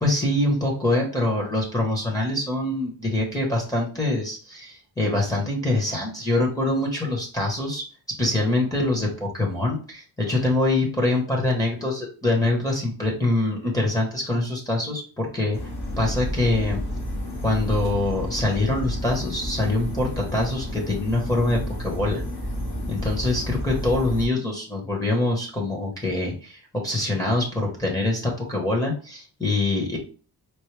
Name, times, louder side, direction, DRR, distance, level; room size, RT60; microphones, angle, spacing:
voice 1, 0.0-7.8 8.2-15.6 16.0-16.8 17.4-22.2 22.9-30.0, left 2 dB, 10° left, -3 dB, 0.9 m, -24 dB
sound 1, 15.5-24.3, equal, 70° left, 1.7 m, -31 dB
4.4 x 2.2 x 3.2 m, 0.38 s
wide cardioid pair, 150°, 38 cm